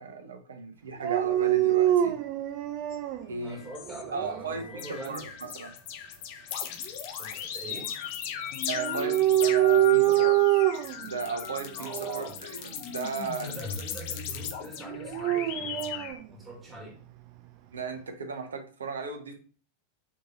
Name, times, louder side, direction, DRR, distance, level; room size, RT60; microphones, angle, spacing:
voice 1, 0.0-2.2 3.3-3.6 4.1-5.7 8.7-10.4 11.0-11.9 12.1-13.6 17.7-19.3, right 4 dB, 70° right, 0.8 m, -35 dB
Dog, 1.0-3.2 3.9-4.6 8.7-11.1 11.8-12.3 14.9-16.2, right 14 dB, 40° right, 0.4 m, -25 dB
sound 1, 2.9-3.0 3.5-4.0 4.6-16.1, left 9 dB, 45° left, 0.6 m, -37 dB
voice 2, 3.4-5.3 7.2-7.9 11.8-12.4 13.4-17.0, right 1 dB, 15° right, 1.6 m, -44 dB
3.7 x 3.0 x 3.7 m
figure-of-eight pair, 90°, 0 cm